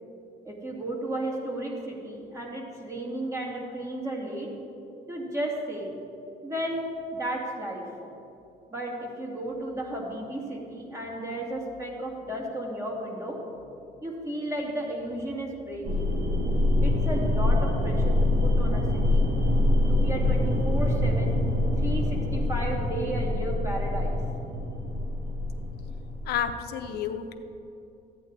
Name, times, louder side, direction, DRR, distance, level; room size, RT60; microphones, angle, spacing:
voice 1, 0.4-4.5 5.1-5.9 6.4-6.8 7.1-7.8 8.7-13.4 14.0-16.1 16.8-19.3 19.9-21.4 21.8-24.2, right 1 dB, 20° right, -1 dB, 2.1 m, -33 dB
sound 1, 15.8-26.4, left 1 dB, 50° right, 1.6 m, -25 dB
voice 2, 26.3-27.3, left 8 dB, 70° left, 6 dB, 0.7 m, -30 dB
13.0 x 9.1 x 4.0 m, 2.8 s
cardioid pair, 110°, 17 cm